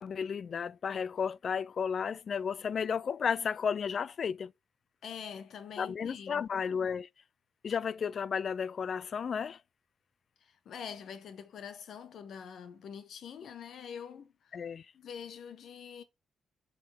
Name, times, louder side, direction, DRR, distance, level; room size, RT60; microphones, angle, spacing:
voice 1, 0.0-4.5 5.8-7.1 7.6-9.6 14.5-14.9, left 6 dB, 50° left, 0.3 m, -33 dB
voice 2, 5.0-6.5 10.4-14.7 14.9-16.0, left 7 dB, 65° left, 1.1 m, -45 dB
7.4 x 5.1 x 3.5 m
cardioid pair, 90°, 0 cm